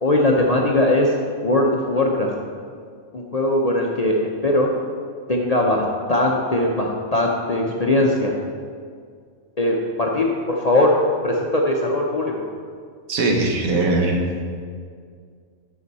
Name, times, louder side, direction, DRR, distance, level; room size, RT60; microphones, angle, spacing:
voice 1, 0.0-1.1 1.4-2.3 3.1-4.7 5.3-5.8 6.1-8.3 9.6-10.9 11.2-12.4, left 1 dB, 45° left, -1 dB, 0.5 m, -20 dB
voice 2, 13.1-14.2, right 2 dB, 85° right, 1 dB, 1.5 m, -20 dB
9.7 x 6.1 x 4.1 m, 2.1 s
omnidirectional pair, 1.4 m